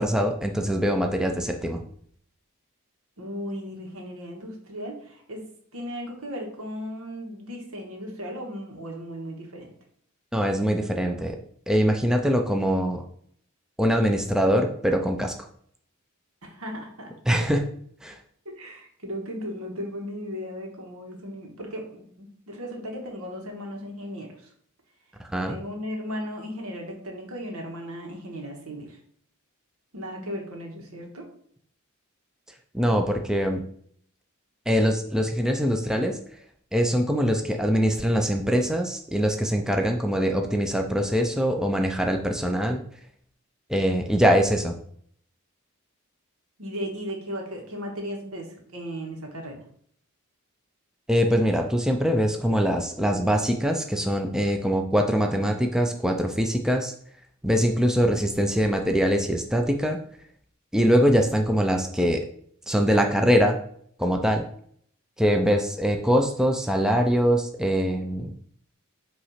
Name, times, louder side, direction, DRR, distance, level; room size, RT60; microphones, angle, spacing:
voice 1, 0.0-1.8 10.3-11.4 11.7-13.0 13.8-15.3 17.3-17.6 18.0-18.2 25.2-25.6 32.7-33.6 34.7-36.2 36.7-42.8 43.7-44.7 51.1-56.9 57.4-60.0 60.7-62.3 62.7-63.6 64.0-64.5 65.2-68.3, equal, 5° right, 3 dB, 0.4 m, -23 dB
voice 2, 3.2-5.4 5.7-9.7 16.4-17.4 18.4-24.5 25.5-29.0 29.9-31.2 46.6-49.6, equal, 80° right, 1 dB, 1.7 m, -36 dB
5.7 x 3.1 x 5.7 m, 0.62 s
head